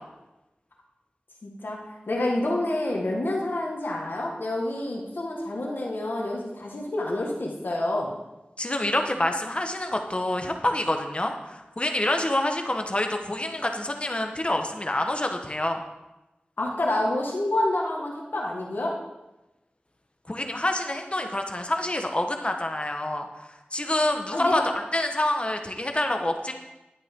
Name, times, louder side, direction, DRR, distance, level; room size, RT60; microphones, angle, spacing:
voice 1, 1.4-1.8 2.1-8.1 16.6-19.0 24.3-24.7, left 1 dB, 80° left, -2 dB, 1.6 m, -28 dB
voice 2, 8.6-15.8 20.3-24.6 24.9-26.5, left 1 dB, 35° left, 4 dB, 1.3 m, -27 dB
11.0 x 9.2 x 3.7 m, 1.0 s
wide cardioid pair, 45°, 3 cm